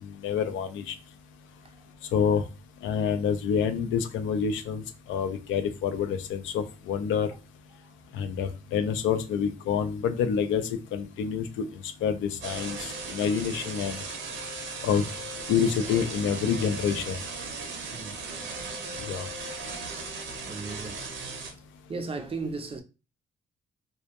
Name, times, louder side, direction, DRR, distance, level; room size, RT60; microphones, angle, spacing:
voice 1, 0.0-1.0 2.1-2.4 2.8-7.3 8.1-14.0 14.8-15.0 15.5-17.2 19.0-19.3, left 7 dB, 75° left, 0.4 m, -27 dB
sound 1, 12.4-21.5, right 3 dB, 70° right, 0.6 m, -37 dB
voice 2, 20.5-21.1 21.9-22.8, right 3 dB, 30° right, 0.4 m, -35 dB
2.1 x 2.1 x 2.7 m
cardioid pair, 90°, 20 cm